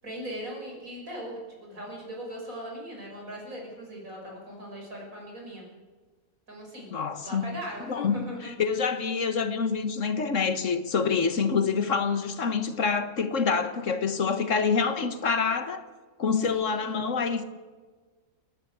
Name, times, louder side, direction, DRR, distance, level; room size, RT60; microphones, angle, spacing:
voice 1, 0.0-5.6 6.5-6.9 7.2-8.5 16.5-17.0, equal, 85° right, 6.7 m, -39 dB
voice 2, 6.9-7.4 7.9-8.2 8.4-15.8 16.2-17.4, left 5 dB, 65° left, 1.7 m, -26 dB
30.0 x 10.5 x 8.4 m
omnidirectional pair, 1.4 m